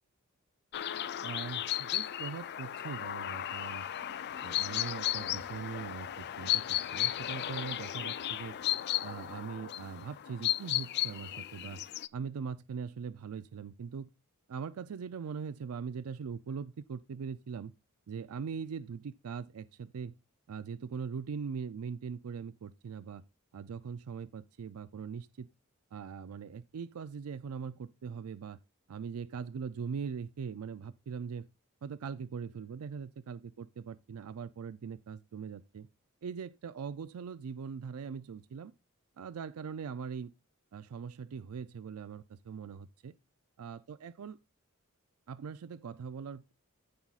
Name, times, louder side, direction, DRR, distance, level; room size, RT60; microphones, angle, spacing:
sound 1, 0.7-12.1, left 12 dB, 50° left, 0.4 m, -35 dB
voice 1, 1.2-3.9 4.4-8.6 9.0-11.8 12.1-14.1 14.5-17.7 18.1-20.1 20.5-23.2 23.5-25.5 25.9-28.6 28.9-31.5 31.8-35.9 36.2-38.7 39.2-40.3 40.7-43.2 43.6-44.4 45.3-46.5, right 6 dB, 85° right, 0.4 m, -41 dB
15.0 x 5.5 x 2.4 m
head